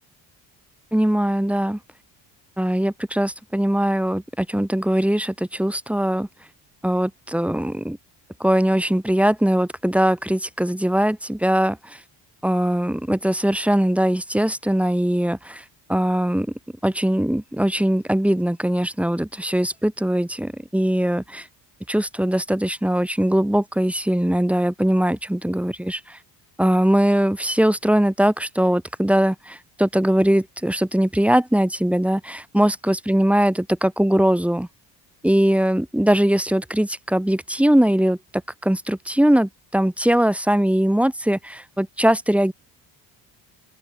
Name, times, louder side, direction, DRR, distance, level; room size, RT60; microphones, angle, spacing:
voice 1, 0.9-1.8 2.6-6.3 6.8-8.0 8.4-12.0 12.4-15.6 15.9-16.5 16.8-21.5 21.9-26.2 26.6-34.7 35.2-38.2 38.6-42.5, right 1 dB, 5° right, 0.9 m, -21 dB
open air
cardioid pair, 85°, 45 cm